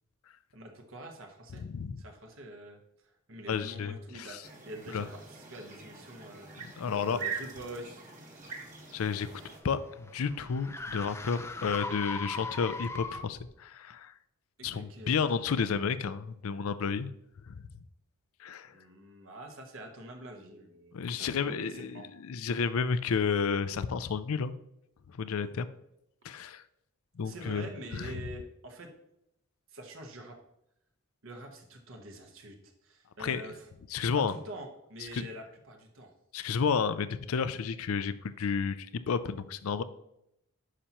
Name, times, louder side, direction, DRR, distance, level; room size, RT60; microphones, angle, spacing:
voice 1, 0.5-1.6 2.0-6.5 6.9-8.0 14.6-15.2 18.7-22.1 27.2-28.9 29.7-30.4 31.2-32.6 32.8-33.7 34.1-36.1, right 1 dB, 60° right, 3 dB, 1.0 m, -46 dB
voice 2, 1.6-2.0 3.5-4.4 4.9-5.1 6.8-7.2 8.9-9.3 9.6-14.1 14.6-17.1 17.5-17.6 18.4-18.7 20.9-24.5 25.2-25.7 26.2-26.6 27.2-28.1 33.2-33.4 33.9-34.3 35.1-35.3 36.3-39.8, left 6 dB, 75° left, 13 dB, 0.4 m, -31 dB
sound 1, 4.4-9.6, right 5 dB, 35° right, 1.3 m, -43 dB
sound 2, 9.0-13.5, left 3 dB, 10° left, 0.3 m, -40 dB
9.8 x 5.7 x 2.9 m, 0.81 s
head